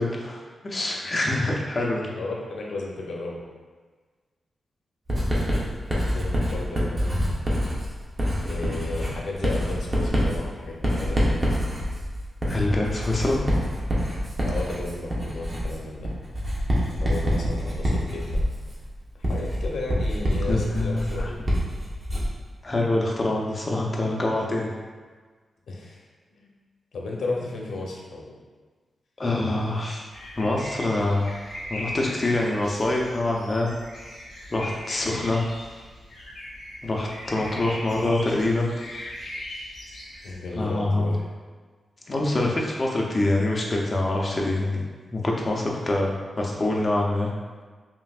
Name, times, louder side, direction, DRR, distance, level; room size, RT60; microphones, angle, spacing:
voice 1, 0.0-2.1 12.5-13.5 20.5-21.3 22.6-24.7 29.2-30.0 30.4-31.3 31.7-33.7 34.5-35.5 36.8-38.7 40.6-41.1 42.1-44.8 45.1-47.3, left 2 dB, 25° left, -2 dB, 0.6 m, -25 dB
voice 2, 2.1-3.4 5.9-7.3 8.4-11.4 14.4-16.1 16.8-18.4 19.2-21.4 25.7-26.1 26.3-26.5 26.9-28.3 35.1-35.2 40.2-41.2, left 2 dB, 75° left, -2 dB, 0.7 m, -34 dB
Writing, 5.1-22.4, equal, 30° right, 0.8 m, -26 dB
sound 1, 30.1-40.4, left 1 dB, 55° left, 1.4 m, -39 dB
5.5 x 2.6 x 2.4 m, 1.4 s
wide cardioid pair, 155°, 0 cm